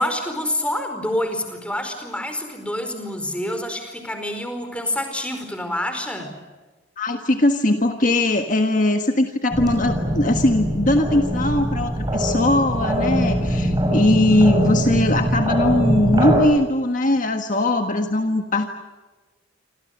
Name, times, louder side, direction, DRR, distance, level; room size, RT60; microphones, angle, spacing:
voice 1, 0.0-6.4, left 1 dB, 5° left, 6 dB, 4.7 m, -27 dB
voice 2, 7.0-18.7, left 1 dB, 40° left, 6 dB, 1.6 m, -20 dB
sound 1, 9.5-16.4, equal, 20° right, 6.4 m, -22 dB
28.0 x 26.5 x 6.7 m, 1.2 s
head